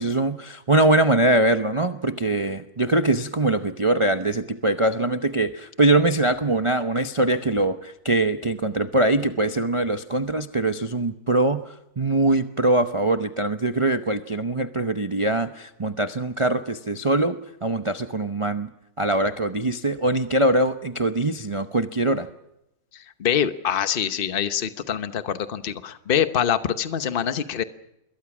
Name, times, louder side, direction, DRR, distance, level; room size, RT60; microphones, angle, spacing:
voice 1, 0.0-18.7 19.0-22.3, right 2 dB, 45° right, 7 dB, 0.4 m, -22 dB
voice 2, 23.2-27.6, left 9 dB, 40° left, 11 dB, 1.0 m, -24 dB
27.0 x 22.0 x 6.1 m, 0.86 s
omnidirectional pair, 1.9 m